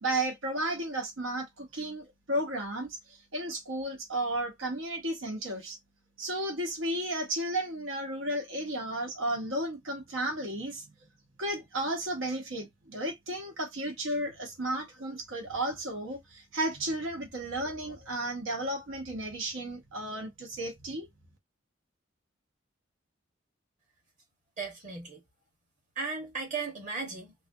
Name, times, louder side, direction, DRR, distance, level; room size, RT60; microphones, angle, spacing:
voice 1, 0.0-3.0 3.3-5.8 6.2-10.8 11.4-21.1, right 1 dB, 80° right, 1.1 m, -33 dB
voice 2, 24.6-25.2 25.9-27.3, right 4 dB, 40° right, 1.4 m, -36 dB
3.0 x 2.5 x 2.6 m
head